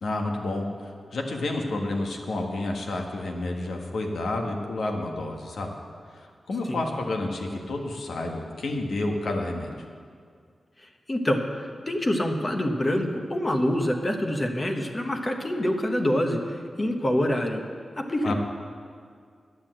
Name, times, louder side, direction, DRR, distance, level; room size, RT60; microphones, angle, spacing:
voice 1, 0.0-5.7 6.1-9.7 18.2-18.3, left 2 dB, 90° left, 1 dB, 1.4 m, -30 dB
voice 2, 11.1-17.6 17.9-18.3, left 1 dB, 20° left, 4 dB, 0.9 m, -26 dB
10.0 x 8.1 x 7.6 m, 2.1 s
wide cardioid pair, 160°, 0 cm